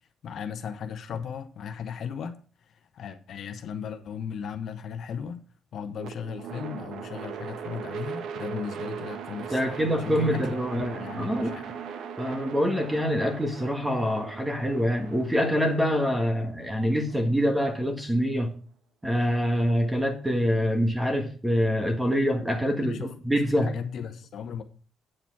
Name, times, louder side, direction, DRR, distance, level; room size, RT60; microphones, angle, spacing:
voice 1, 0.2-2.4 2.9-5.4 5.7-11.7 22.8-24.6, left 7 dB, 60° left, 1.0 m, -36 dB
sound 1, 6.0-18.1, right 7 dB, 75° right, 1.0 m, -39 dB
voice 2, 9.5-11.6 12.2-18.5 19.0-23.7, equal, 10° right, 1.5 m, -25 dB
8.9 x 6.7 x 4.7 m
cardioid pair, 115°, 0 cm